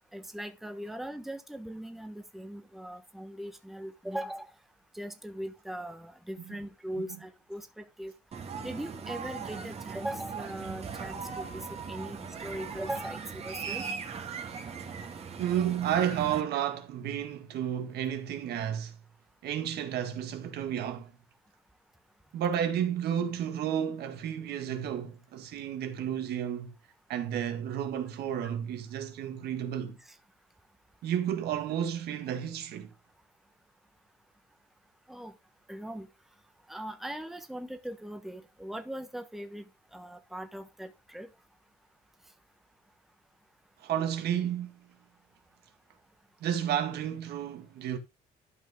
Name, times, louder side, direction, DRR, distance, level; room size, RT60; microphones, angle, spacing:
voice 1, 0.1-4.5 4.9-8.1 8.6-13.8 35.1-35.3 35.7-36.1 36.7-41.3, right 1 dB, ahead, 1.2 m, -40 dB
sound 1, 8.3-16.4, right 6 dB, 40° right, 2.0 m, -39 dB
voice 2, 15.4-18.9 19.4-21.1 22.3-26.7 27.1-30.0 31.0-32.9 43.8-44.8 46.4-48.0, right 9 dB, 75° right, 1.8 m, -32 dB
12.0 x 5.5 x 3.7 m
cardioid pair, 110°, 17 cm